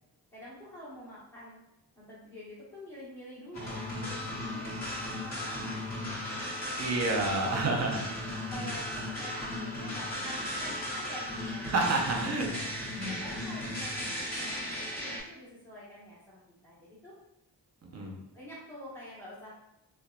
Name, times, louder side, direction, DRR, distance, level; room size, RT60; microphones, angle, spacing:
voice 1, 0.3-1.6 2.0-6.6 7.2-7.6 8.0-11.9 12.4-12.5 13.0-14.1 14.5-17.1 18.3-19.6, equal, 5° left, -11 dB, 1.0 m, -47 dB
sound 1, 3.5-15.2, left 1 dB, 40° left, 1.2 m, -36 dB
voice 2, 6.8-8.0 11.7-12.5 13.0-13.1 17.9-18.2, right 2 dB, 40° right, 0 dB, 0.6 m, -29 dB
2.8 x 2.2 x 2.3 m, 0.88 s
cardioid pair, 55°, 43 cm